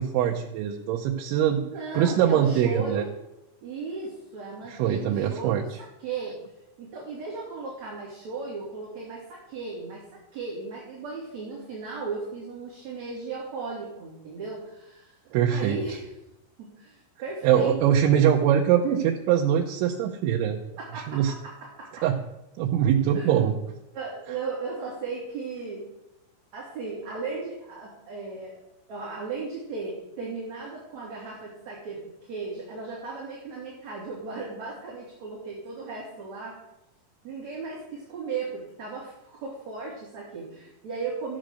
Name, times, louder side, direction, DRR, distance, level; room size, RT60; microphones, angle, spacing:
voice 1, 0.0-1.6 1.9-3.0 4.7-5.6 15.3-15.8 17.4-20.6 20.9-21.3 22.0-22.2 22.6-23.6, right 9 dB, 90° right, 0 dB, 3.3 m, -23 dB
voice 2, 1.7-3.1 3.6-5.7 6.0-6.4 6.8-15.2 15.5-16.1 16.6-18.0 20.8-21.2 21.8-21.9 23.1-23.4 23.9-25.9 26.5-28.6 28.9-36.6 37.2-41.4, right 4 dB, 45° right, -5 dB, 3.7 m, -36 dB
14.0 x 8.9 x 6.4 m, 0.92 s
omnidirectional pair, 5.3 m